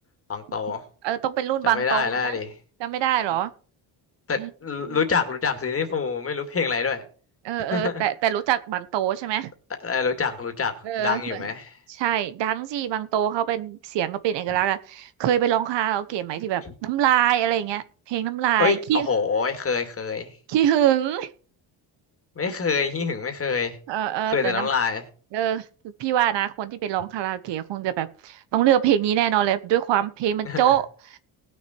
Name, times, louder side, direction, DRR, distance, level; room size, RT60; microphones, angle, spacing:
voice 1, 0.3-0.8 1.6-2.5 4.3-7.0 7.7-8.0 9.8-10.7 11.0-11.8 18.6-20.3 22.4-23.8 24.3-25.0 30.4-30.7, left 5 dB, 30° left, 2.4 m, -26 dB
voice 2, 1.0-2.4 2.8-3.5 4.4-4.5 4.9-5.0 7.4-9.5 10.8-11.4 12.0-19.1 20.5-21.3 23.9-24.7 25.3-25.6 26.0-30.8 31.1-31.2, right 11 dB, 75° right, 1.0 m, -24 dB
19.0 x 6.6 x 4.5 m
cardioid pair, 120°, 43 cm